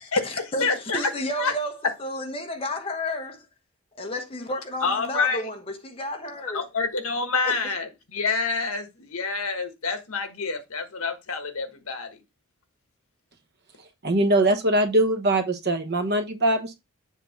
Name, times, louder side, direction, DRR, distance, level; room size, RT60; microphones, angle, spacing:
voice 1, 0.1-1.1 1.4-1.6 4.8-5.5 6.4-12.1, left 4 dB, 75° left, 1.4 m, -27 dB
voice 2, 0.9-1.7 2.0-3.4 4.0-5.5 5.8-6.6 7.5-7.6, left 1 dB, 25° left, 1.1 m, -31 dB
voice 3, 14.0-16.8, right 1 dB, 45° right, 1.0 m, -22 dB
7.4 x 2.8 x 5.8 m
head